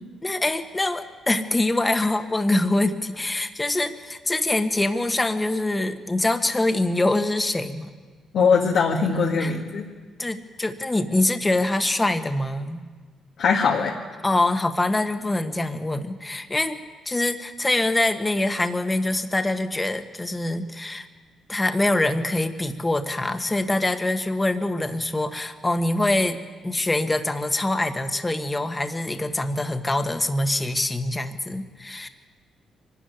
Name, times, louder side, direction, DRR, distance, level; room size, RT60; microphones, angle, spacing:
voice 1, 0.2-8.0 9.4-9.5 10.2-12.8 14.2-16.8 17.0-21.1 21.5-32.1, left 2 dB, 15° left, 7 dB, 1.5 m, -24 dB
voice 2, 8.3-9.9 13.4-13.9, left 5 dB, 70° left, -1 dB, 1.9 m, -21 dB
23.5 x 13.0 x 9.5 m, 1.4 s
cardioid pair, 90°, 0 cm